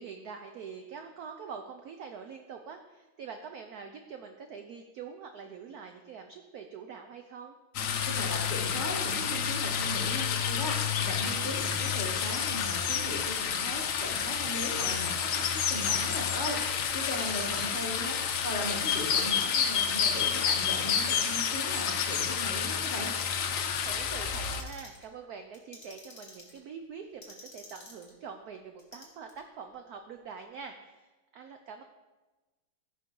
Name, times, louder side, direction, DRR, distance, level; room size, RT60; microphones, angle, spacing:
voice 1, 0.0-7.6 17.4-17.6 23.8-31.8, right 6 dB, 75° right, 6 dB, 0.8 m, -45 dB
sound 1, 7.7-24.6, left 7 dB, 80° left, 0.7 m, -30 dB
voice 2, 8.1-23.1, left 1 dB, 25° left, -2 dB, 1.4 m, -38 dB
Clock, 17.1-17.9 18.5-19.5 19.9-20.9 21.3-22.3 22.8-23.6 24.1-25.1 25.5-26.6 27.2-28.1 28.8-29.4, left 2 dB, 40° left, 2.0 m, -49 dB
14.5 x 5.4 x 3.7 m, 1.2 s
omnidirectional pair, 2.2 m